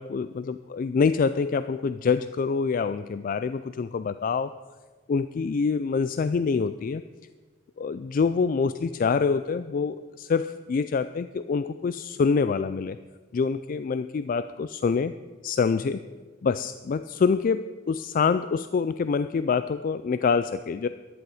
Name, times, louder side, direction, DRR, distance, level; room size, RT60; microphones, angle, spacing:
voice 1, 0.0-4.5 5.1-7.0 7.8-13.0 13.3-15.1 15.4-16.0 16.4-20.9, left 5 dB, 45° left, 13 dB, 0.3 m, -26 dB
14.0 x 11.0 x 4.9 m, 1.4 s
head